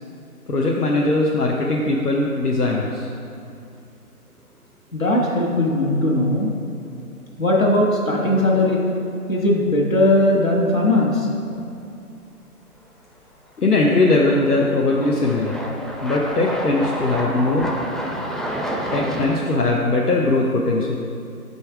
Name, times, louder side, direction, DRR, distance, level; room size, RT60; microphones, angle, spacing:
voice 1, 0.5-3.1 13.6-15.6 16.0-17.7 18.9-21.0, left 2 dB, 80° left, -2 dB, 0.9 m, -20 dB
sound 1, 1.6-2.1 2.4-2.5 5.4-5.5 6.9-7.1 7.4-7.5 12.9-13.0 13.7-19.4, equal, ahead, 0.4 m, -30 dB
voice 2, 4.9-6.5 7.4-8.8 9.3-11.3 17.6-17.7, left 1 dB, 60° left, -2 dB, 1.6 m, -19 dB
6.3 x 5.5 x 4.7 m, 2.6 s
figure-of-eight pair, 180°, 46 cm